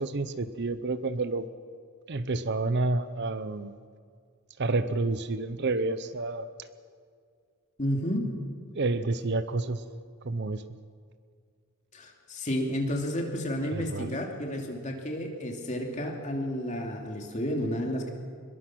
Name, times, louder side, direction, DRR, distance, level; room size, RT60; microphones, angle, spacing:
voice 1, 0.0-1.5 2.1-3.7 4.6-6.5 8.8-9.8 10.2-10.6 13.7-14.1, right 3 dB, 50° right, 13 dB, 0.7 m, -29 dB
voice 2, 7.8-8.3 11.9-18.1, equal, 35° left, 1 dB, 2.8 m, -31 dB
22.0 x 21.5 x 6.1 m, 2.1 s
head